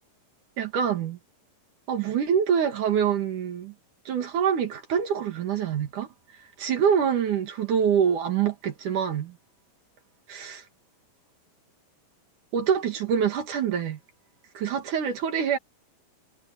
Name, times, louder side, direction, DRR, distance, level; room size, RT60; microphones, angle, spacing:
voice 1, 0.6-1.2 1.9-3.7 4.1-6.1 6.6-9.3 10.3-10.6 12.5-14.0 14.6-15.6, right 8 dB, 65° right, 3.3 m, -25 dB
omnidirectional pair, 3.9 m